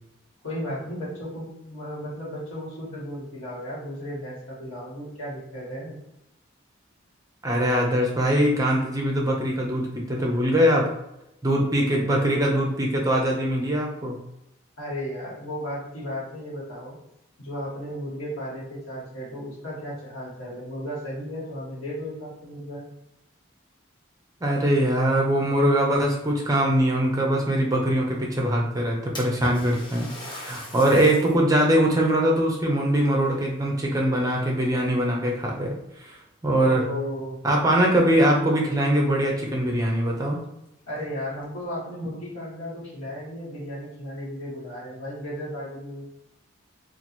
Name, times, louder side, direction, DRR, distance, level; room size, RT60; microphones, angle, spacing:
voice 1, 0.4-6.0 14.8-16.9 17.4-22.8 36.6-37.4 40.9-46.0, equal, 90° left, -6 dB, 1.4 m, -35 dB
voice 2, 7.4-10.9 11.4-14.2 24.4-36.2 36.4-36.8 37.4-40.4, right 1 dB, 15° right, -1 dB, 0.6 m, -22 dB
Splash splatter, 29.1-31.4 31.9-32.0 33.0-34.0 34.3-34.8 35.6-35.7 36.2-36.3 38.5-38.6 38.9-39.0 39.5-39.6 40.0-40.1 40.9-41.4, left 1 dB, 25° left, 0.6 m, -39 dB
2.9 x 2.5 x 4.2 m, 0.85 s
head